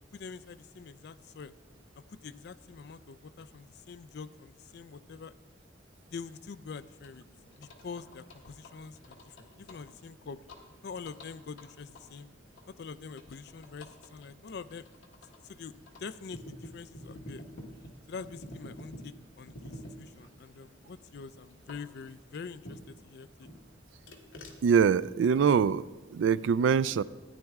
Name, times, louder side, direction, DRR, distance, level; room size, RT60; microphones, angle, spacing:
voice 1, 0.1-1.5 2.0-5.3 6.1-7.2 7.6-10.4 10.8-12.3 12.7-14.9 15.4-17.4 18.1-23.5, left 5 dB, 60° left, 14 dB, 0.4 m, -45 dB
sound 1, 6.7-23.0 23.4-25.7, equal, 85° left, 1.5 m, -51 dB
voice 2, 24.6-25.9 26.1-27.0, right 6 dB, 75° right, 18 dB, 0.3 m, -24 dB
13.5 x 9.8 x 3.6 m, 1.3 s
head